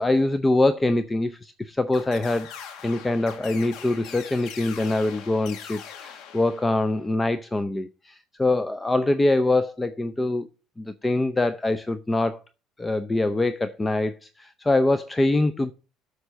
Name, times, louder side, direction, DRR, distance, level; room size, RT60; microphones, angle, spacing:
voice 1, 0.0-2.5 2.8-10.5 10.8-12.4 12.8-15.7, left 2 dB, 15° left, 0.6 m, -24 dB
sound 1, 1.9-7.1, left 8 dB, 65° left, 2.0 m, -42 dB
8.1 x 6.7 x 6.3 m
cardioid pair, 120°, 0 cm